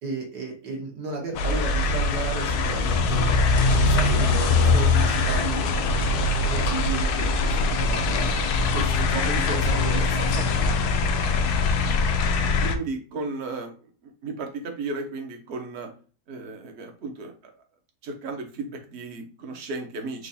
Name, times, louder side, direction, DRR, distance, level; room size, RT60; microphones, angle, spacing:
voice 1, 0.0-5.7 6.5-8.4 8.7-10.5, right 3 dB, 80° right, -1 dB, 1.8 m, -33 dB
sound 1, 1.4-12.8, left 3 dB, 70° left, 1.1 m, -22 dB
voice 2, 9.1-9.8 10.3-10.8 11.3-11.4 12.6-13.7 14.2-15.9 16.3-17.5 18.0-20.3, right 3 dB, 50° right, 4 dB, 1.0 m, -35 dB
4.6 x 2.5 x 4.1 m, 0.38 s
omnidirectional pair, 1.8 m